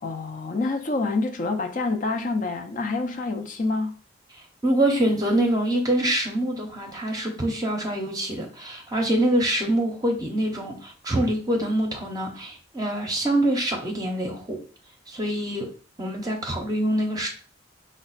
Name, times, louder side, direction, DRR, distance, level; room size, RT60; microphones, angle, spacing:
voice 1, 0.0-3.9, left 3 dB, 40° left, 0.5 m, -27 dB
voice 2, 4.3-14.6 15.1-15.7 16.0-17.3, right 1 dB, 20° right, 0.7 m, -25 dB
5.1 x 2.1 x 4.0 m
head